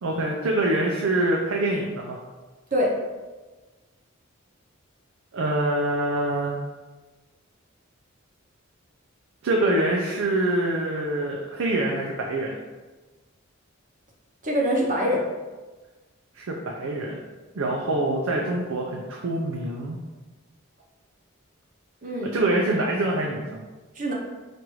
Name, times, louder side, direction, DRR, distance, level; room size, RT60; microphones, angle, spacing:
voice 1, 0.0-2.2 5.3-6.6 9.4-12.6 16.4-17.2 17.5-20.0 22.3-23.6, right 1 dB, 75° right, -1 dB, 0.5 m, -25 dB
voice 2, 14.4-15.2 22.0-22.5 23.9-24.1, equal, 35° right, -2 dB, 0.7 m, -24 dB
4.7 x 2.5 x 3.0 m, 1.2 s
head